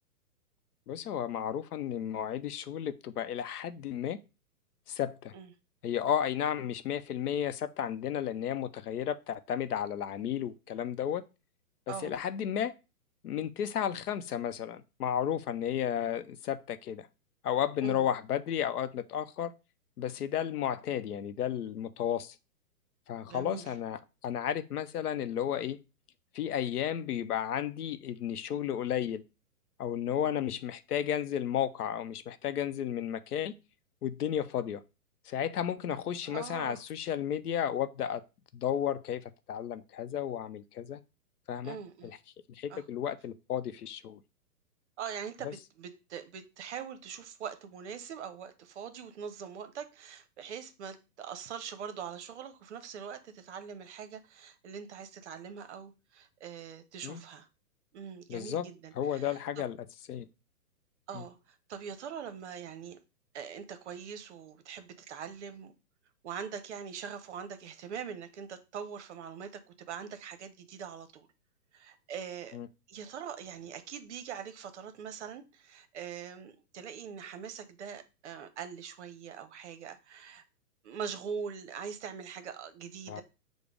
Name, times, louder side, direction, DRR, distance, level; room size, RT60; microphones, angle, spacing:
voice 1, 0.9-4.2 4.9-5.3 5.8-11.2 11.9-12.7 13.2-17.1 17.4-19.5 20.0-22.4 23.1-25.8 26.3-29.2 29.8-33.5 34.0-34.8 35.3-38.2 38.5-41.0 41.5-41.8 42.0-42.1 42.6-44.2 45.4-45.5 57.0-57.2 58.3-58.7 59.0-59.8 60.1-60.3 61.1-61.2 72.5-72.7 83.1-83.2, left 9 dB, 75° left, 0.6 m, -33 dB
voice 2, 23.3-23.7 36.2-36.8 41.6-42.1 42.7-42.9 45.0-57.5 57.9-59.6 61.1-63.0 63.3-65.7 66.2-71.3 71.7-72.6 72.9-80.4 80.8-83.2, right 7 dB, 50° right, 0.7 m, -42 dB
4.9 x 2.1 x 4.8 m
hypercardioid pair, 135°, 46 cm